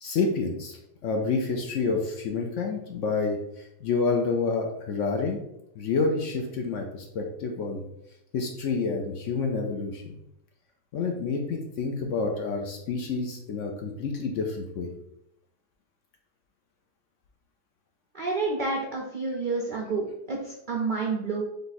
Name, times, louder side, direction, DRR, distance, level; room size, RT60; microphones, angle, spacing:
voice 1, 0.0-5.4 5.8-7.8 8.3-10.1 10.9-14.9, left 4 dB, 65° left, 2 dB, 0.8 m, -28 dB
voice 2, 18.1-21.4, right 3 dB, 85° right, -1 dB, 0.4 m, -29 dB
3.5 x 3.3 x 4.0 m, 0.80 s
omnidirectional pair, 1.7 m